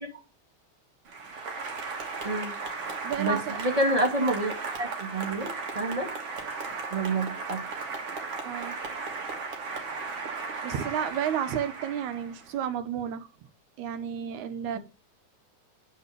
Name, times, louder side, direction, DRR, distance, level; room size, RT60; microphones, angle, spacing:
Applause, 1.1-12.6, right 4 dB, 55° right, 2.5 m, -36 dB
voice 1, 2.2-2.5 3.2-5.5 5.7-6.1 6.9-7.6 14.7-14.8, right 1 dB, 15° right, 2.1 m, -28 dB
voice 2, 3.0-3.6 8.4-8.8 10.6-13.3 13.8-14.8, right 9 dB, 80° right, 2.3 m, -31 dB
9.3 x 4.6 x 6.6 m
omnidirectional pair, 3.4 m